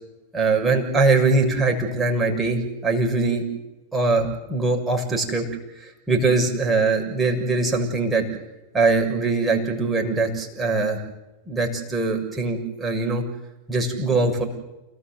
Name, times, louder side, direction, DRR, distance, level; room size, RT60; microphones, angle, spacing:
voice 1, 0.3-3.4 3.9-5.4 5.7-8.2 8.7-11.0 11.5-13.2 13.7-14.4, right 3 dB, 10° right, 1 dB, 6.7 m, -22 dB
29.0 x 19.5 x 8.0 m, 0.98 s
figure-of-eight pair, 90°, 0 cm